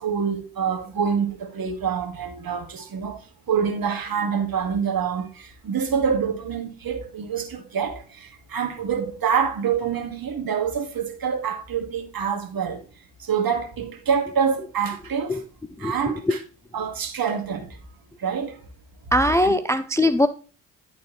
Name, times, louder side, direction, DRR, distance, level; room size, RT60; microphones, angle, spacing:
voice 1, 0.0-3.2 3.5-12.8 13.2-15.4 15.8-16.4 16.7-17.8 18.2-18.6 19.4-19.5, right 7 dB, 50° right, 1.9 m, -26 dB
voice 2, 15.7-16.3 19.1-20.3, left 1 dB, 5° left, 0.4 m, -21 dB
11.0 x 4.1 x 3.1 m
hypercardioid pair, 45°, 46 cm